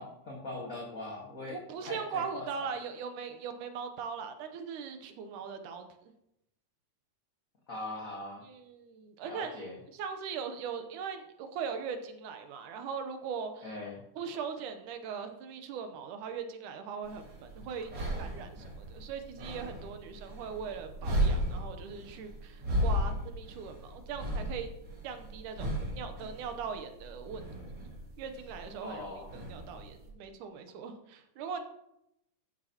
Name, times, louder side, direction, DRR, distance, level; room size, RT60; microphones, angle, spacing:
voice 1, 0.0-1.6 1.8-2.7 7.7-8.4 9.2-9.8 13.6-14.0 28.8-29.3, left 2 dB, 40° left, -3 dB, 1.3 m, -41 dB
voice 2, 1.5-5.9 8.4-9.7 9.9-13.6 14.2-17.9 18.2-24.7 25.0-27.4 28.2-31.6, right 6 dB, 80° right, 8 dB, 2.3 m, -40 dB
sound 1, 17.0-30.1, equal, 40° right, 2.3 m, -35 dB
14.0 x 8.9 x 2.9 m, 0.81 s
omnidirectional pair, 3.6 m